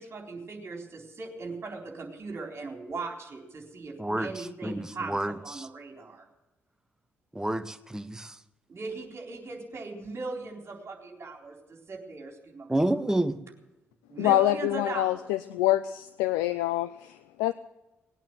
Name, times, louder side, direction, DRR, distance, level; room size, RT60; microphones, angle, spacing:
voice 1, 0.0-6.3 8.7-12.9 14.1-15.3, right 3 dB, 40° right, 4.0 m, -39 dB
voice 2, 4.0-5.7 7.3-8.4 12.7-13.4, right 1 dB, 10° right, 1.2 m, -29 dB
voice 3, 14.2-17.5, left 15 dB, 70° left, 0.4 m, -26 dB
19.0 x 9.0 x 7.8 m
figure-of-eight pair, 40°, 7 cm